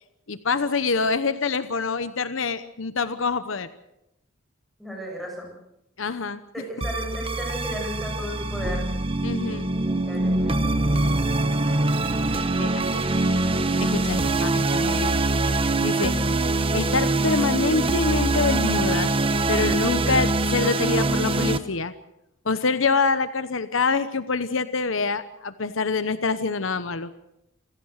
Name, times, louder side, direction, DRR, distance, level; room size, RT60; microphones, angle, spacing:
voice 1, 0.3-3.7 6.0-6.4 9.2-9.7 10.9-11.4 12.6-13.0 13.8-15.1 15.5-16.1 16.7-19.1 19.5-21.9 22.4-27.1, left 4 dB, 75° left, 12 dB, 1.0 m, -26 dB
voice 2, 4.8-5.5 6.5-9.0 10.1-11.0 16.0-16.3, equal, ahead, 0 dB, 7.6 m, -35 dB
sound 1, 6.8-21.6, right 2 dB, 25° right, 1.0 m, -23 dB
27.5 x 16.5 x 6.6 m, 0.85 s
head